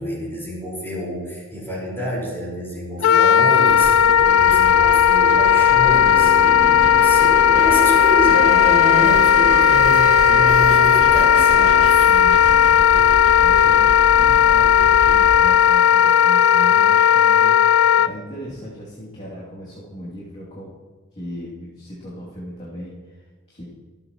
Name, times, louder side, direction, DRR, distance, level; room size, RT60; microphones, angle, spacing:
voice 1, 0.0-12.1, left 1 dB, 10° left, -5 dB, 4.9 m, -28 dB
Wind instrument woodwind instrument, 3.0-18.1, left 9 dB, 70° left, 0.3 m, -14 dB
sound 1, 3.7-15.3, right 1 dB, 65° right, 1.9 m, -32 dB
sound 2, 5.8-12.0, right 3 dB, 35° right, 1.5 m, -31 dB
voice 2, 12.1-12.8 13.4-20.7 21.1-23.6, equal, 35° left, -8 dB, 2.8 m, -37 dB
25.0 x 8.9 x 3.1 m, 1.4 s
head